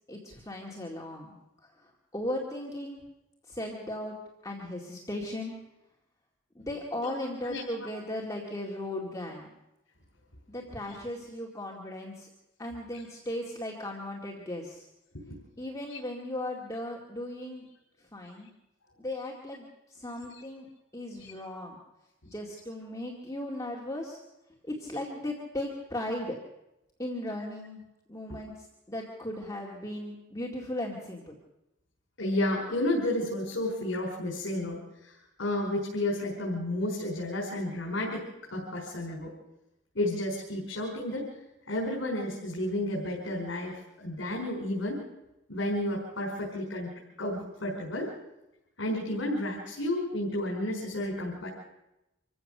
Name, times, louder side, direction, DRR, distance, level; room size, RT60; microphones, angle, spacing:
voice 1, 0.1-1.3 2.1-3.0 3.5-4.2 4.4-5.6 6.6-9.5 10.5-12.3 12.6-14.9 15.6-17.7 18.1-18.5 19.0-20.7 20.9-21.8 22.3-24.2 24.6-26.4 27.0-27.8 28.1-28.5 28.9-31.4, left 1 dB, 15° left, -2 dB, 2.2 m, -37 dB
voice 2, 32.2-35.1 35.4-38.2 38.5-39.3 39.9-41.3 41.7-45.0 45.5-48.1 48.8-51.5, left 1 dB, 75° left, -2 dB, 5.0 m, -31 dB
26.0 x 15.0 x 6.7 m, 0.92 s
head